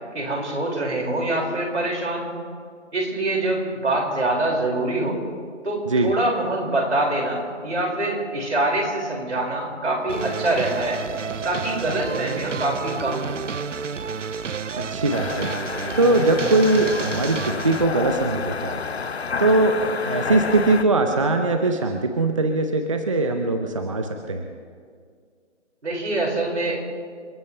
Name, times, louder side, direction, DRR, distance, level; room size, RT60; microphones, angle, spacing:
voice 1, 0.1-2.4 2.9-5.2 5.6-11.0 11.4-13.4 25.8-26.8, right 2 dB, 70° right, -1 dB, 5.4 m, -24 dB
sound 1, 10.1-17.8, right 6 dB, 90° right, 0.7 m, -30 dB
voice 2, 14.8-15.5 16.0-18.8 19.4-19.7 20.0-24.4, right 2 dB, 25° right, 5 dB, 0.7 m, -21 dB
sound 2, 15.1-20.8, left 5 dB, 60° left, 1.0 m, -29 dB
29.5 x 13.5 x 3.3 m, 2.1 s
figure-of-eight pair, 165°, 36 cm